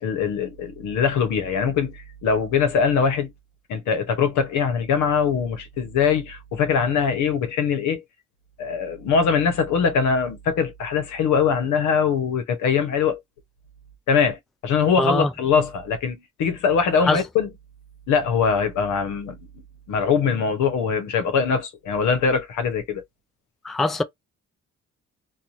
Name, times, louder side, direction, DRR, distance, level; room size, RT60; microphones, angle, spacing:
voice 1, 0.0-3.3 3.7-8.0 8.6-13.2 14.1-17.5 18.1-19.5 19.9-23.0, left 6 dB, 80° left, 0.9 m, -22 dB
voice 2, 15.0-15.3 17.1-17.2 23.6-24.0, left 2 dB, ahead, 0.3 m, -22 dB
2.6 x 2.3 x 2.8 m
cardioid pair, 90°, 30 cm